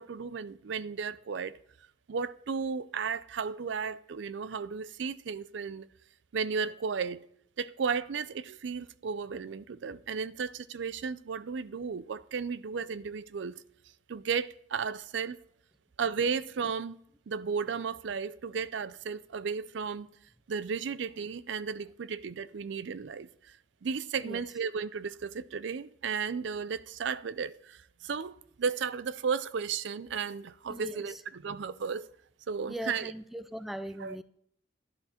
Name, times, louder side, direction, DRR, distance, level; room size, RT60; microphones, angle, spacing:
voice 1, 0.0-1.6 2.1-5.9 6.3-7.2 7.6-13.6 14.1-15.4 16.0-17.0 17.3-20.1 20.5-23.6 23.8-32.1 32.5-33.1 34.0-34.2, right 5 dB, 65° right, 0.4 m, -34 dB
voice 2, 30.7-31.2 32.7-34.2, equal, ahead, 0.3 m, -40 dB
11.5 x 11.0 x 4.3 m
head